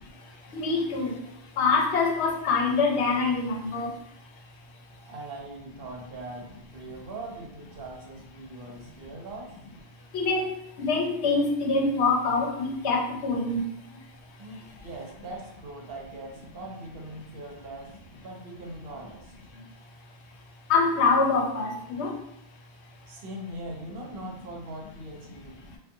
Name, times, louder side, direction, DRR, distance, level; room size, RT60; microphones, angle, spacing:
voice 1, 0.5-1.2 1.6-3.9 10.1-10.5 10.8-13.6 20.7-22.1, left 4 dB, 85° left, 1 dB, 0.9 m, -25 dB
voice 2, 5.1-9.5 14.4-18.0 18.2-19.3 23.1-25.6, right 1 dB, 65° right, 0 dB, 0.8 m, -41 dB
2.6 x 2.2 x 2.5 m, 0.75 s
omnidirectional pair, 1.1 m